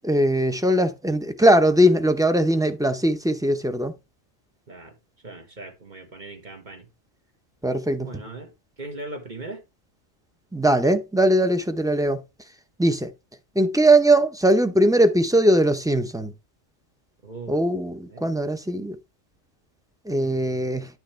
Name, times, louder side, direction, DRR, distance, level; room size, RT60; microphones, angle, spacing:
voice 1, 0.0-3.9 7.6-8.1 10.5-12.2 12.8-13.1 13.5-16.3 17.5-19.0 20.1-20.9, right 1 dB, 5° right, 0.5 m, -20 dB
voice 2, 4.7-5.0 5.2-6.9 8.0-8.5 8.8-9.6 17.2-17.7 18.0-18.4 20.2-20.7, right 2 dB, 35° right, 1.6 m, -39 dB
10.5 x 6.4 x 3.3 m
omnidirectional pair, 1.4 m